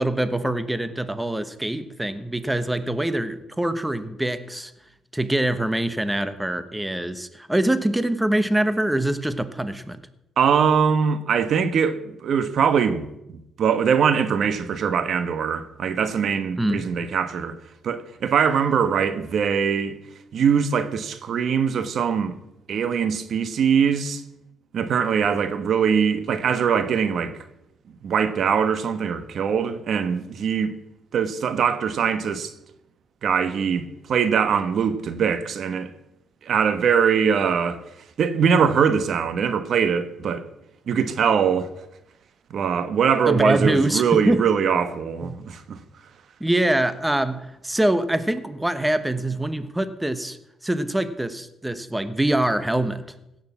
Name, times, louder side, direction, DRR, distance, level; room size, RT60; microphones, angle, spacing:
voice 1, 0.0-4.7 5.1-10.0 16.6-16.8 43.3-44.4 45.2-45.3 46.4-50.4 50.6-53.1, right 1 dB, 10° right, 1.1 m, -24 dB
voice 2, 10.4-17.6 17.8-20.0 20.3-22.3 22.7-24.2 24.7-27.4 27.9-30.7 31.1-32.5 33.2-35.9 36.4-37.8 38.2-40.4 40.9-41.7 42.5-45.8, right 7 dB, 60° right, 1.2 m, -22 dB
16.5 x 6.6 x 7.3 m
cardioid pair, 90°, 0 cm